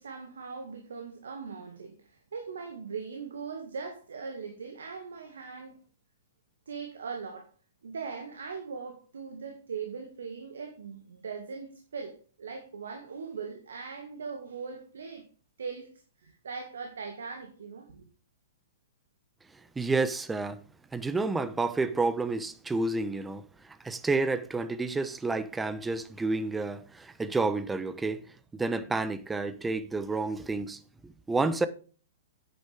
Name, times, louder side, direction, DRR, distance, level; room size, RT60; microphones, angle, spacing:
voice 1, 0.0-5.8 6.7-7.5 7.8-15.2 15.6-15.9 16.2-18.1, right 5 dB, 75° right, 2.0 m, -40 dB
voice 2, 19.8-20.6 20.9-23.4 23.8-28.2 28.5-31.7, right 3 dB, 10° right, 0.9 m, -30 dB
9.5 x 9.3 x 3.5 m
figure-of-eight pair, 115°, 0 cm